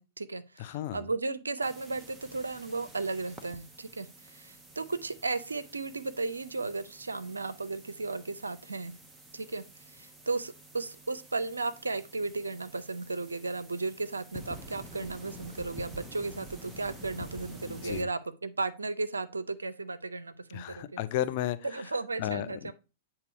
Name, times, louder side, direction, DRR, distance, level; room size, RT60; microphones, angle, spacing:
voice 1, 0.0-8.9 9.3-21.0 21.6-22.7, right 3 dB, 80° right, 0.5 m, -35 dB
voice 2, 0.6-1.1 17.7-18.1 20.5-21.9 22.2-22.7, left 13 dB, 45° left, 0.5 m, -34 dB
sound 1, 1.6-18.0, right 1 dB, 10° right, 0.9 m, -49 dB
8.2 x 2.9 x 4.6 m
figure-of-eight pair, 100°, 0 cm